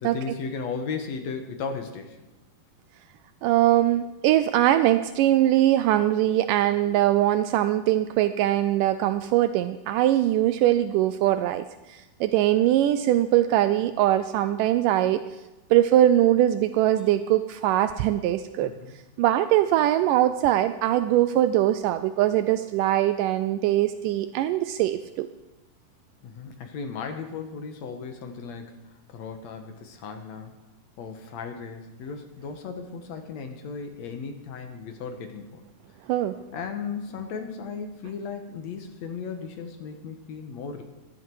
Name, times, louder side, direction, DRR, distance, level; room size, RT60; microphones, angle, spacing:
voice 1, 0.0-2.2 18.6-18.9 26.2-30.5 31.0-35.6 36.5-40.8, left 5 dB, 60° left, 6 dB, 2.0 m, -36 dB
voice 2, 3.4-15.2 15.7-18.7 19.2-25.3 36.1-36.4, right 13 dB, 90° right, 11 dB, 1.8 m, -22 dB
15.5 x 12.5 x 4.7 m, 1.1 s
omnidirectional pair, 4.4 m